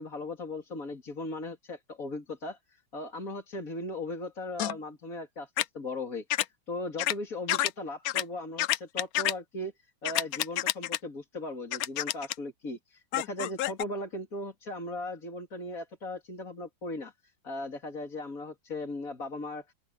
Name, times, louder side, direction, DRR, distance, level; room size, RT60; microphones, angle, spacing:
voice 1, 0.0-19.7, left 2 dB, 45° left, 3.5 m, -38 dB
sound 1, 4.6-4.7 5.6-5.7 6.3-6.4 7.0-7.1 7.5-7.7 8.0-8.2 8.6-9.3 10.0-11.0 11.7-12.3 13.1-13.8, left 14 dB, 80° left, 0.8 m, -28 dB
open air
omnidirectional pair, 2.1 m